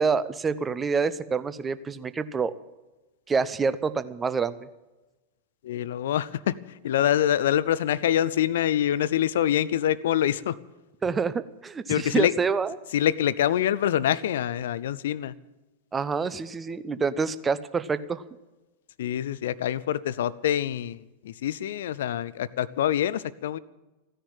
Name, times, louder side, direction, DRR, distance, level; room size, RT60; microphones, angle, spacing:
voice 1, 0.0-2.5 3.3-4.6 11.0-12.7 15.9-18.2, right 5 dB, 15° right, 15 dB, 0.8 m, -27 dB
voice 2, 5.6-10.6 11.9-12.3 12.9-15.3 19.0-23.6, left 11 dB, 60° left, 19 dB, 0.6 m, -25 dB
15.5 x 10.0 x 8.9 m, 1.1 s
figure-of-eight pair, 90°, 0 cm